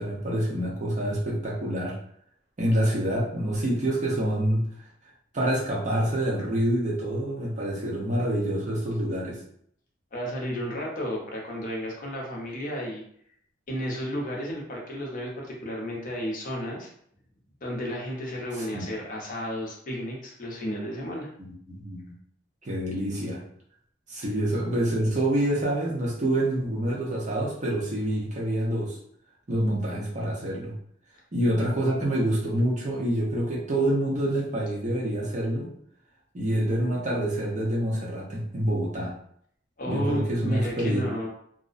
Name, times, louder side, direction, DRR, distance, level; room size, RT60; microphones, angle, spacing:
voice 1, 0.0-1.9 2.6-4.7 5.3-9.4 18.5-18.8 21.4-22.0 22.6-23.4 24.1-29.0 29.5-30.7 31.3-35.7 36.3-39.1 39.9-41.1, right 1 dB, 40° right, -3 dB, 0.7 m, -27 dB
voice 2, 10.1-13.0 13.7-16.9 17.6-21.3 39.8-41.3, equal, 45° left, -2 dB, 0.6 m, -32 dB
2.5 x 2.0 x 2.4 m, 0.66 s
head